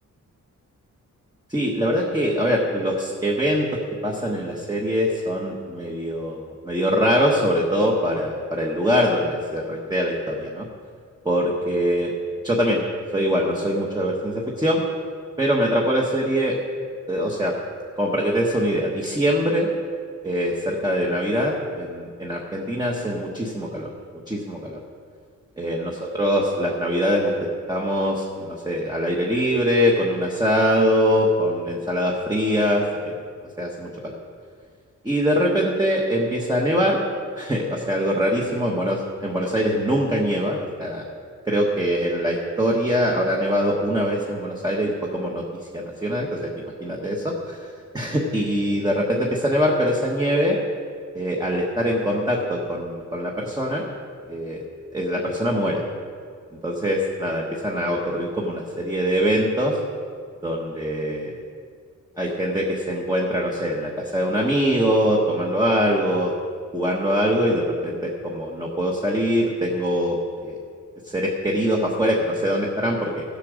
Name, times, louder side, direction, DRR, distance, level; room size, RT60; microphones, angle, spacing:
voice 1, 1.5-3.7 4.0-10.7 11.2-12.1 12.4-12.8 13.1-14.8 15.4-16.5 17.1-17.5 18.0-19.7 20.2-23.9 24.3-24.8 25.6-27.3 27.7-33.1 33.6-34.2 35.0-37.0 37.4-41.0 41.5-45.4 45.7-46.5 46.8-50.6 51.1-53.8 54.3-54.6 54.9-55.8 56.6-59.8 60.4-61.4 62.2-66.3 66.7-70.2 70.4-70.6 71.0-73.2, equal, 15° right, -2 dB, 1.1 m, -23 dB
15.5 x 8.4 x 6.3 m, 2.1 s
wide cardioid pair, 175°, 32 cm